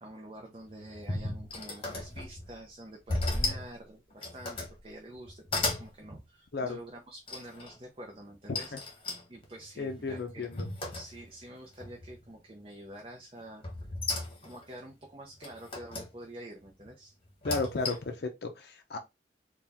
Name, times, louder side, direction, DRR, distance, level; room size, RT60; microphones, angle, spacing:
voice 1, 0.0-8.9 9.3-10.5 10.9-13.6 14.4-17.1, right 1 dB, 30° right, 0.6 m, -47 dB
sound 1, 0.7-2.5 3.1-3.7 4.1-4.8 5.2-5.9 7.3-7.7 8.5-11.4 11.8-12.3 13.6-14.6 15.4-16.1 17.2-18.2, left 2 dB, 30° left, 1.1 m, -35 dB
voice 2, 9.8-10.7 17.4-19.0, left 3 dB, 55° left, 0.5 m, -34 dB
4.2 x 2.3 x 3.4 m
head